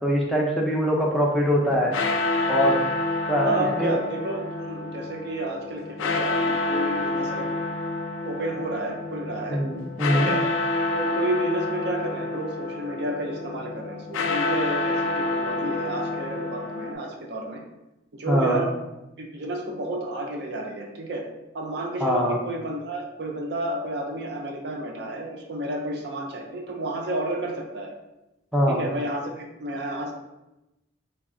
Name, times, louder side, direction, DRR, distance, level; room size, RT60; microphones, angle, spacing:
voice 1, 0.0-1.9 2.5-2.8 3.3-3.9 9.5-10.3 18.3-18.6 22.0-22.4 28.5-28.8, equal, ahead, -3 dB, 0.4 m, -22 dB
sound 1, 1.6-16.9, left 2 dB, 85° left, 0.4 m, -28 dB
voice 2, 3.4-7.5 8.2-9.6 10.1-10.4 10.9-17.6 18.1-18.7 19.2-21.2 21.5-27.9 28.7-30.1, right 1 dB, 60° right, 2 dB, 0.5 m, -31 dB
3.3 x 2.3 x 3.6 m, 0.96 s
head